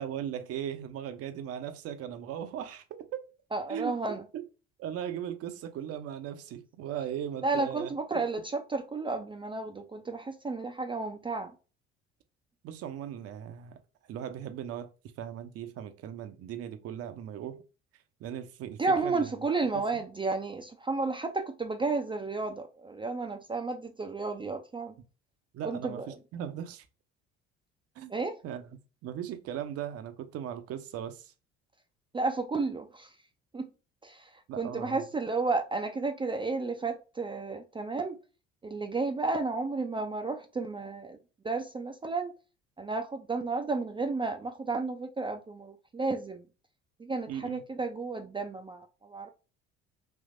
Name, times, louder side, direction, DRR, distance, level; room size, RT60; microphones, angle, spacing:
voice 1, 0.0-3.2 3.7-4.0 4.3-4.5 4.8-8.3 12.6-13.8 14.1-14.9 15.2-17.6 18.2-19.3 19.7-20.0 25.5-26.8 28.0-28.1 28.4-28.6 29.0-31.3 34.5-35.0 47.3-47.6, right 10 dB, 50° right, 0.7 m, -38 dB
voice 2, 3.5-4.2 7.4-11.5 18.8-24.9 25.6-26.1 28.1-28.4 32.1-33.1 33.5-33.7 34.0-38.2 38.6-41.2 41.4-42.3 42.8-46.5 47.0-49.3, right 3 dB, 15° right, 0.5 m, -32 dB
3.5 x 2.7 x 2.6 m
hypercardioid pair, 65°, 30 cm